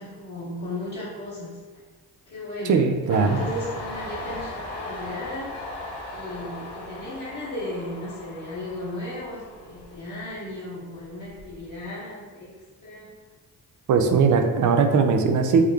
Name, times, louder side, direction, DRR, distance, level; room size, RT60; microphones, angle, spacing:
voice 1, 0.0-1.6 2.3-5.5 6.1-13.2, left 1 dB, 50° left, -12 dB, 1.4 m, -35 dB
voice 2, 2.7-3.4 13.9-15.7, right 5 dB, 50° right, 6 dB, 0.5 m, -19 dB
Train, 3.1-10.5 10.9-11.7, left 2 dB, 80° left, 0.8 m, -38 dB
3.6 x 2.2 x 3.3 m, 1.4 s
supercardioid pair, 65°, 39 cm